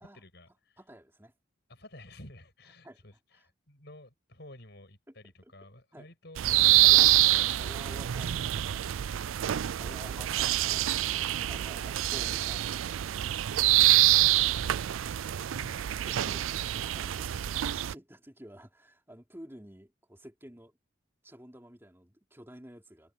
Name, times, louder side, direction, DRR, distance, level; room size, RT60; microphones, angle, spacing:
voice 1, 0.0-0.8 1.7-6.4 6.8-7.7 8.1-8.2 9.9-10.5 13.7-14.8 15.1-15.2 15.4-16.5, left 1 dB, 55° left, 7.9 m, -51 dB
voice 2, 0.8-1.3 2.8-3.0 3.3-3.5 5.1-5.2 5.4-5.5 5.9-6.1 6.8-7.2 7.6-9.1 9.8-13.0 16.1-20.7 21.2-23.1, right 1 dB, 10° right, 3.6 m, -51 dB
sound 1, 6.4-17.9, right 15 dB, 90° right, 0.4 m, -26 dB
head